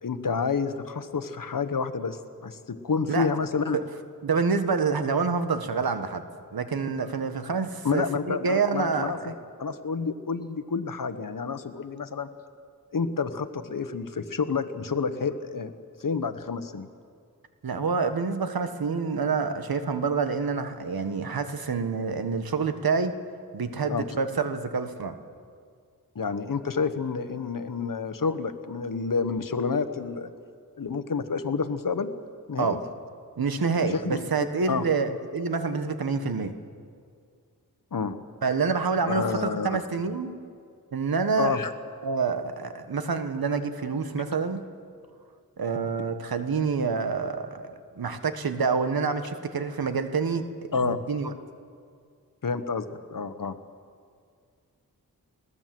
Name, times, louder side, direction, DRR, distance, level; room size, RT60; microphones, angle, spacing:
voice 1, 0.0-3.8 7.8-12.3 12.9-15.7 16.0-16.9 23.9-24.0 26.1-30.3 30.8-32.1 32.5-32.8 33.8-34.2 34.7-34.9 37.9-38.2 39.1-39.7 41.4-41.7 50.7-51.0 52.4-53.5, left 5 dB, 65° left, 10 dB, 1.3 m, -29 dB
voice 2, 4.2-6.2 6.5-9.3 17.6-23.1 23.5-25.2 32.6-32.8 33.4-36.5 38.4-40.3 40.9-41.6 42.0-44.6 45.6-50.5 50.8-51.3, right 5 dB, 80° right, 9 dB, 1.5 m, -27 dB
20.5 x 17.5 x 7.8 m, 2.2 s
wide cardioid pair, 60°, 35 cm